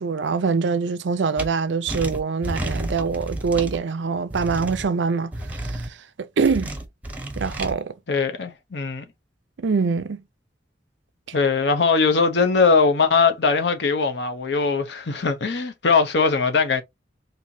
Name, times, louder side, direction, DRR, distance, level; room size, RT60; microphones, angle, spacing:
voice 1, 0.0-6.7 7.4-7.9 9.6-10.2, right 5 dB, 85° right, 0.5 m, -24 dB
sound 1, 1.4-1.5 1.9-3.8 4.3-4.8 5.3-5.9 6.4-7.7, right 1 dB, 10° right, 0.7 m, -31 dB
voice 2, 8.1-9.0 11.3-16.8, left 4 dB, 70° left, 0.7 m, -20 dB
4.3 x 2.6 x 2.7 m
head